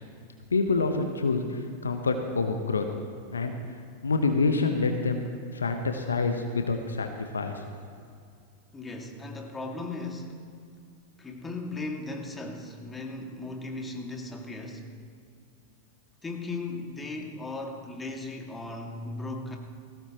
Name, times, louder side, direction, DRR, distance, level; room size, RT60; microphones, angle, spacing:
voice 1, 0.5-2.9 3.3-3.5 4.0-5.2 5.5-7.6, left 4 dB, 75° left, 6 dB, 1.0 m, -27 dB
voice 2, 8.7-10.4 11.2-14.9 16.2-19.6, left 2 dB, 15° left, 2 dB, 2.0 m, -37 dB
20.0 x 16.5 x 3.0 m, 2.3 s
figure-of-eight pair, 90°, 0 cm